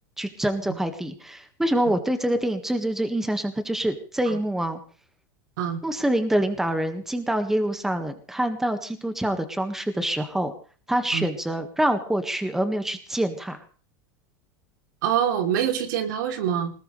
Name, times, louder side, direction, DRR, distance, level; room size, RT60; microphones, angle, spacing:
voice 1, 0.2-4.8 5.8-10.5 10.9-13.6, right 1 dB, 5° right, 7 dB, 1.7 m, -26 dB
voice 2, 15.0-16.7, right 9 dB, 75° right, 5 dB, 3.3 m, -25 dB
20.5 x 19.5 x 3.4 m, 0.39 s
supercardioid pair, 145°, 10 cm